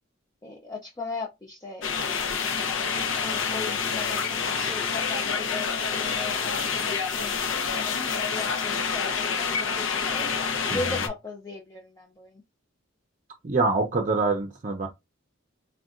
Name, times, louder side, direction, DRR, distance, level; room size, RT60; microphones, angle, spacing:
voice 1, 0.4-2.3 3.2-7.3 7.7-10.3 10.7-12.4, left 3 dB, 20° left, 0.5 m, -38 dB
sound 1, 1.8-11.1, left 6 dB, 70° left, 0.6 m, -27 dB
voice 2, 13.4-14.9, right 3 dB, 40° right, 0.5 m, -25 dB
3.8 x 2.2 x 2.4 m
head